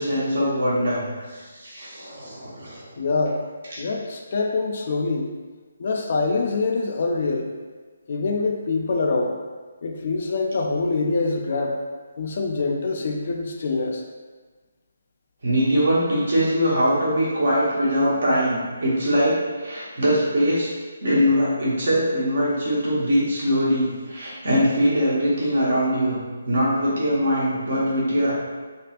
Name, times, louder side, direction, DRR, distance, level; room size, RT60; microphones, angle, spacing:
voice 1, 0.0-2.8 10.0-10.1 15.4-20.7 21.0-28.3, equal, 60° right, -7 dB, 1.2 m, -22 dB
voice 2, 3.0-3.4 3.8-5.3 5.8-7.5 8.1-9.4 9.8-11.8 12.2-14.0 17.8-17.9, left 3 dB, 50° left, 1 dB, 0.4 m, -25 dB
3.3 x 2.4 x 2.9 m, 1.4 s
figure-of-eight pair, 145°, 0 cm